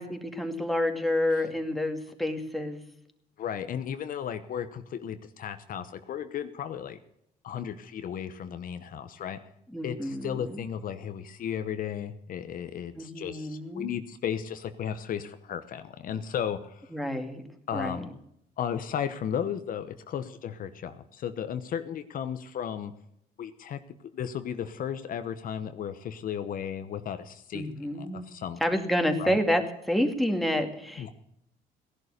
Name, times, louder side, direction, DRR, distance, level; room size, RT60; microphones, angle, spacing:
voice 1, 0.0-2.8 9.7-10.6 13.0-13.9 16.9-17.4 17.7-18.0 27.5-28.3 28.6-31.1, left 1 dB, ahead, 4 dB, 2.3 m, -29 dB
voice 2, 3.4-7.0 7.4-9.4 9.8-16.9 17.7-18.1 18.6-22.9 23.4-23.8 24.1-28.6 29.2-29.4 31.0-31.1, left 8 dB, 55° left, 9 dB, 1.0 m, -34 dB
16.5 x 11.0 x 6.6 m, 0.77 s
cardioid pair, 110°, 17 cm